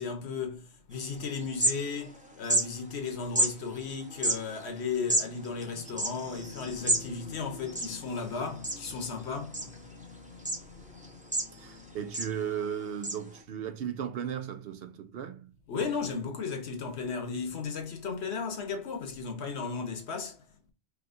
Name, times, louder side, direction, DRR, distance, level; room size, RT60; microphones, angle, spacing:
voice 1, 0.0-12.1 15.7-20.4, left 5 dB, 80° left, 1.2 m, -36 dB
sound 1, 1.0-1.1 1.4-2.2 2.4-2.7 3.4-3.5 4.1-7.1 7.4-7.5 7.7-8.3 8.6-9.1 9.5-10.0 10.4-10.6 11.0-11.8 12.1-12.3 13.0-13.1, right 1 dB, 10° right, 0.7 m, -29 dB
voice 2, 11.6-15.5, right 8 dB, 70° right, 0.8 m, -36 dB
4.7 x 2.8 x 2.5 m
omnidirectional pair, 1.1 m